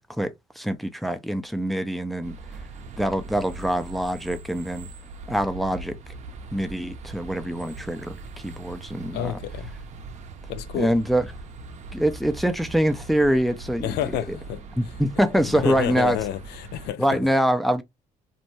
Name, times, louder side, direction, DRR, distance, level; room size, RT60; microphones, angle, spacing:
voice 1, 0.0-2.3 3.0-4.9 5.3-6.0 6.5-9.4 10.7-11.3 11.9-14.4 14.8-16.2 17.0-17.8, equal, ahead, 0.4 m, -24 dB
sound 1, 2.2-16.9, right 3 dB, 45° right, 0.6 m, -40 dB
voice 2, 9.1-9.7 10.5-10.9 13.8-14.6 15.5-17.2, left 12 dB, 80° left, 0.4 m, -29 dB
2.6 x 2.2 x 2.9 m
cardioid pair, 110°, 17 cm